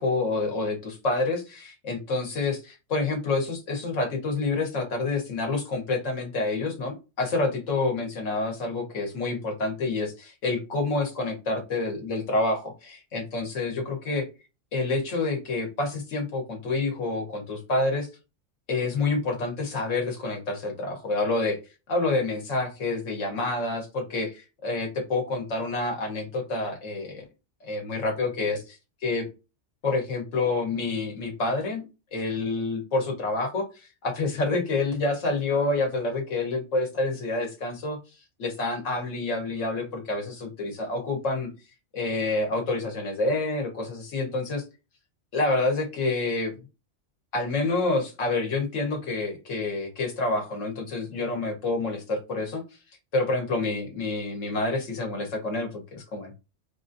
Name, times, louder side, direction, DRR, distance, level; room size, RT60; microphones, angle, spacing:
voice 1, 0.0-14.2 14.7-18.1 18.7-21.6 21.9-27.2 27.6-28.8 29.0-29.2 29.8-31.8 32.1-38.0 38.4-41.5 41.9-44.6 45.3-46.5 47.3-52.6 53.1-56.3, left 3 dB, 85° left, 3 dB, 1.5 m, -28 dB
4.7 x 2.5 x 2.6 m, 0.29 s
omnidirectional pair, 1.3 m